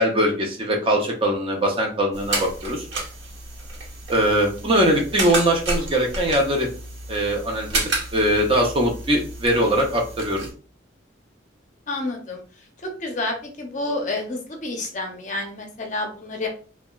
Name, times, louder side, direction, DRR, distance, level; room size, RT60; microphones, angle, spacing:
voice 1, 0.0-2.9 4.1-6.7 7.1-7.8 8.1-10.5, right 1 dB, 25° right, 0 dB, 0.5 m, -21 dB
sound 1, 2.1-10.5, right 2 dB, 70° right, 1.0 m, -31 dB
voice 2, 11.9-12.4 13.0-16.5, left 2 dB, 40° left, 2 dB, 0.6 m, -29 dB
2.8 x 2.2 x 2.2 m, 0.39 s
head